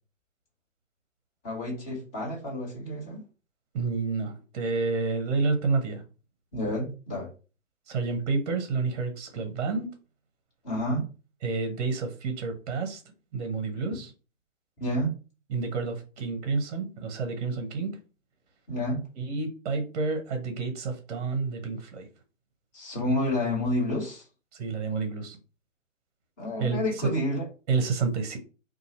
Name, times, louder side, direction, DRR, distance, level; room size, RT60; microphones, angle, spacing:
voice 1, 1.4-3.2 6.5-7.3 10.6-11.0 14.8-15.1 18.7-19.0 22.7-24.2 26.4-27.4, left 1 dB, 30° left, -2 dB, 1.6 m, -29 dB
voice 2, 3.7-6.0 7.9-10.0 11.4-13.0 13.3-14.1 15.5-18.0 19.2-22.1 24.5-25.4 26.6-26.8 27.7-28.4, right 4 dB, 30° right, 6 dB, 0.7 m, -29 dB
2.7 x 2.4 x 4.2 m, 0.34 s
figure-of-eight pair, 135°, 39 cm